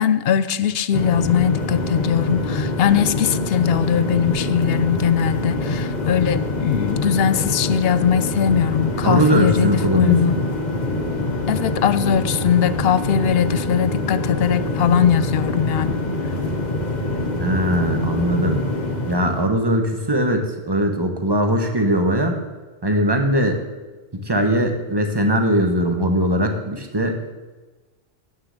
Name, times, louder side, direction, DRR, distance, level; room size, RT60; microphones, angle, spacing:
voice 1, 0.0-10.4 11.5-16.0, left 8 dB, 70° left, 14 dB, 0.8 m, -20 dB
sound 1, 0.9-19.5, left 2 dB, 45° left, 1.2 m, -25 dB
voice 2, 9.0-10.2 17.4-18.6 19.1-22.3 22.8-23.6 24.2-27.2, equal, 25° right, 4 dB, 1.2 m, -20 dB
9.0 x 6.7 x 7.5 m, 1.2 s
omnidirectional pair, 1.1 m